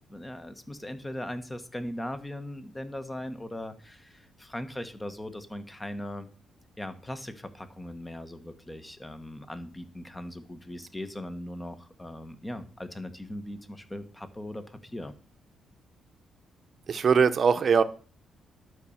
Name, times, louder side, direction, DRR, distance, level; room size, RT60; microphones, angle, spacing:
voice 1, 0.1-6.3 6.8-15.1, left 1 dB, 15° left, 9 dB, 1.4 m, -39 dB
voice 2, 16.9-17.8, right 6 dB, 50° right, 10 dB, 1.0 m, -21 dB
12.0 x 5.3 x 7.2 m, 0.39 s
cardioid pair, 100°, 0 cm